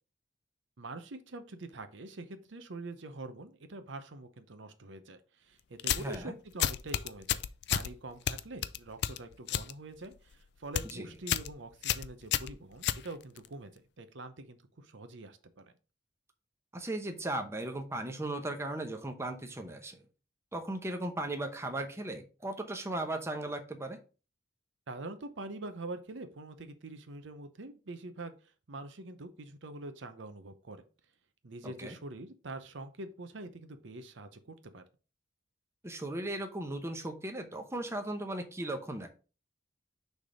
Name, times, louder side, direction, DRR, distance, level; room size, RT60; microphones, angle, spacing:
voice 1, 0.8-7.4 7.7-15.7 24.9-28.3 28.7-30.8 31.4-34.8, right 2 dB, 70° right, 9 dB, 0.8 m, -45 dB
sound 1, 5.8-6.2 6.6-7.9 8.3-9.7 10.0-10.3 10.6-10.9 11.3-11.5 11.8-13.5, left 10 dB, 60° left, 0.4 m, -31 dB
voice 2, 6.0-6.3 10.8-11.1 16.7-20.0 20.5-24.0 31.6-31.9 35.8-39.1, right 1 dB, 15° right, 5 dB, 0.8 m, -37 dB
6.3 x 3.4 x 4.9 m, 0.34 s
head